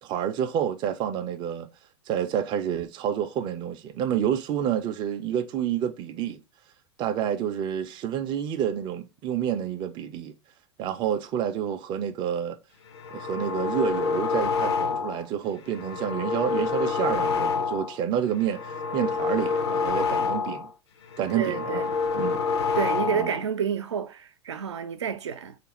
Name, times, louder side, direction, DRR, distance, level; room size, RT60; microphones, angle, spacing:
voice 1, 0.0-1.7 2.1-6.4 7.0-10.3 10.8-12.6 13.1-20.7 21.2-21.8 22.1-22.4 23.1-23.3, right 9 dB, 30° right, 0.5 m, -29 dB
sound 1, 12.9-15.3 15.6-18.0 18.3-20.7 21.0-23.4, left 5 dB, 65° left, 0.7 m, -27 dB
voice 2, 21.3-21.8 22.8-25.6, right 7 dB, 75° right, 0.6 m, -29 dB
3.4 x 2.5 x 2.9 m
hypercardioid pair, 95°, 15 cm